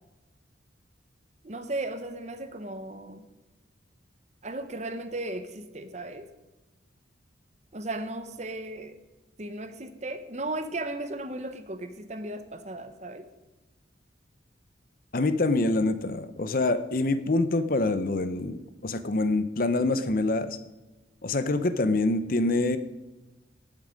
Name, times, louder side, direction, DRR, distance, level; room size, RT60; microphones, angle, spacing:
voice 1, 1.4-3.2 4.4-6.3 7.7-8.9 9.4-13.3, right 2 dB, 35° right, 9 dB, 0.9 m, -36 dB
voice 2, 15.1-20.6 21.2-22.8, left 2 dB, 45° left, 11 dB, 0.7 m, -25 dB
18.0 x 7.5 x 5.1 m, 1.1 s
head